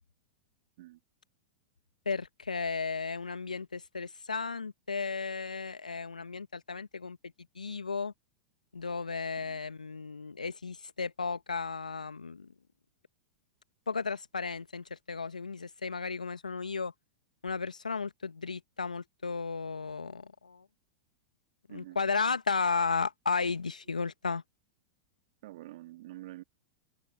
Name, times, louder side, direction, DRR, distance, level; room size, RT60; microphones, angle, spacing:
voice 1, 2.0-7.2 7.5-8.1 8.7-12.5 13.9-16.9 17.4-20.7 21.7-24.4, left 4 dB, 85° left, 1.5 m, -34 dB
voice 2, 25.4-26.4, right 17 dB, 60° right, 2.4 m, -47 dB
figure-of-eight pair, 100°, 4 cm